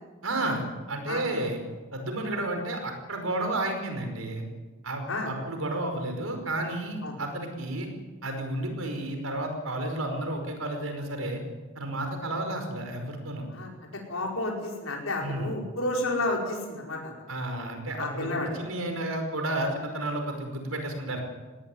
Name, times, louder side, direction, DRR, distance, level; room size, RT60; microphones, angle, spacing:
voice 1, 0.2-1.6 1.9-4.4 4.8-7.9 8.2-11.4 11.8-13.4 15.2-15.5 17.3-21.2, right 1 dB, 85° right, 5 dB, 5.2 m, -32 dB
voice 2, 14.1-17.3 18.0-18.5, left 2 dB, 85° left, -1 dB, 5.0 m, -31 dB
20.0 x 18.0 x 9.8 m, 1.3 s
head